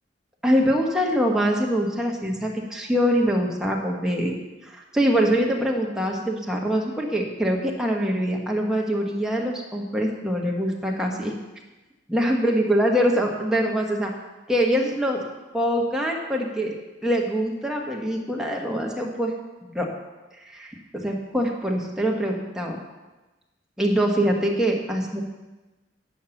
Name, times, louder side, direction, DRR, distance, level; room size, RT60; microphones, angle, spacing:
voice 1, 0.4-4.4 4.6-11.3 12.1-14.1 14.5-15.2 15.5-16.8 17.0-19.3 19.6-19.9 20.5-22.8 23.8-25.2, equal, 5° right, -1 dB, 1.3 m, -24 dB
8.5 x 6.4 x 7.1 m, 1.1 s
head